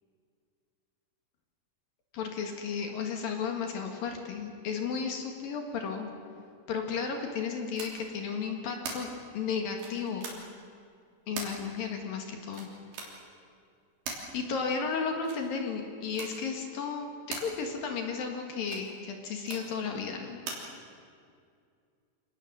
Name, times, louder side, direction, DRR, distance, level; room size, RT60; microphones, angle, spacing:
voice 1, 2.1-6.1 6.7-9.1 9.3-10.3 11.3-12.7 13.0-13.2 14.3-17.1 17.4-20.4, left 5 dB, 60° left, 3 dB, 3.1 m, -34 dB
sound 1, 7.7-7.9 8.8-9.0 9.8-10.3 11.4-11.5 12.5-13.1 14.1-14.2 15.2-15.4 16.1-16.3 17.3-17.4 18.6-18.9 19.5-19.6 20.5-20.6, right 4 dB, 70° right, 5.4 m, -38 dB
27.0 x 19.0 x 7.6 m, 2.3 s
omnidirectional pair, 5.3 m